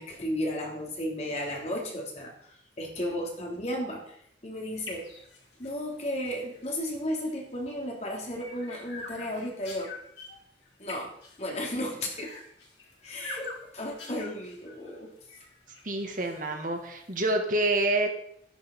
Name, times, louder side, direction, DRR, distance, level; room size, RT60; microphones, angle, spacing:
voice 1, 0.0-5.1 5.6-9.9 10.8-11.1 11.4-12.3 13.0-15.1, left 1 dB, 40° left, 0 dB, 3.2 m, -34 dB
sound 1, 4.7-17.3, left 3 dB, 90° left, 5.0 m, -47 dB
voice 2, 15.8-18.1, right 2 dB, 50° right, 3 dB, 2.0 m, -27 dB
12.0 x 11.0 x 5.5 m, 0.69 s
head